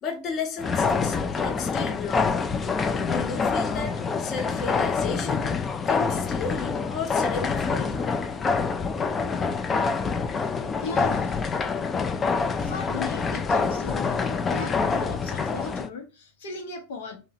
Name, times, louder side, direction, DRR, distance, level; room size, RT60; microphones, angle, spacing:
voice 1, 0.0-2.5 3.1-8.0, left 5 dB, 40° left, 0.7 m, -34 dB
sound 1, 0.6-15.9, left 5 dB, 25° left, 0.3 m, -26 dB
voice 2, 10.8-11.4 12.6-17.2, left 4 dB, 75° left, 0.6 m, -37 dB
2.7 x 2.0 x 2.7 m
hypercardioid pair, 100°, 0 cm